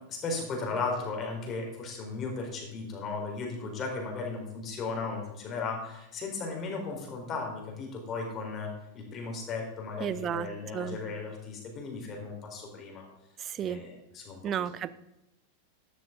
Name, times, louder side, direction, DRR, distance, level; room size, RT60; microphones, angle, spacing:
voice 1, 0.1-13.1 13.6-14.7, left 4 dB, 30° left, 1 dB, 4.3 m, -36 dB
voice 2, 10.0-10.5 10.7-11.0 13.4-13.8 14.4-14.9, right 9 dB, 30° right, 17 dB, 0.6 m, -32 dB
13.5 x 11.0 x 3.9 m, 0.90 s
figure-of-eight pair, 90°, 0 cm